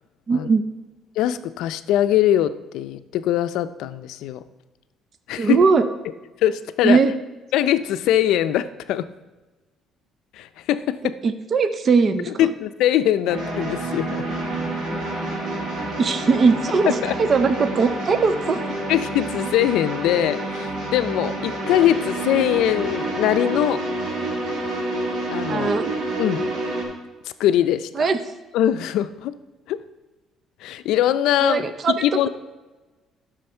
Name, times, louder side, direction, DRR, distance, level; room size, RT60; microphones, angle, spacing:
voice 1, 0.3-0.6 5.4-5.9 6.8-7.1 11.2-12.5 16.0-18.6 25.5-25.9 28.0-28.2 31.4-31.9, right 4 dB, 35° right, 10 dB, 0.5 m, -19 dB
voice 2, 1.2-4.4 5.3-5.6 6.4-7.0 7.5-9.1 10.3-11.2 12.3-14.1 16.9-17.1 18.9-23.8 25.3-25.7 26.2-26.4 27.4-27.9 28.5-29.3 29.7-29.8 30.6-31.7 32.0-32.3, left 12 dB, 80° left, 12 dB, 0.4 m, -22 dB
sound 1, 13.3-26.8, right 2 dB, 60° right, 2.9 m, -28 dB
11.5 x 6.3 x 4.4 m, 1.2 s
cardioid pair, 155°, 0 cm